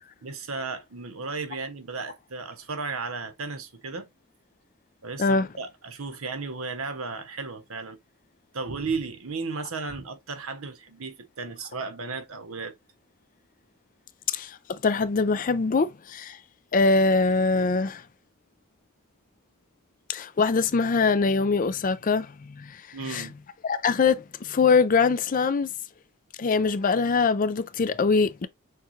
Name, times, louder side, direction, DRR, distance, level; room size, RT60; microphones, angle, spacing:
voice 1, 0.2-4.1 5.0-8.0 8.5-12.7 22.9-23.4, right 4 dB, 80° right, 1.0 m, -34 dB
voice 2, 14.3-16.4 16.7-18.0 20.1-22.8 23.1-23.3 23.6-25.7 26.4-28.5, left 4 dB, 40° left, 0.4 m, -23 dB
6.5 x 2.4 x 3.1 m
head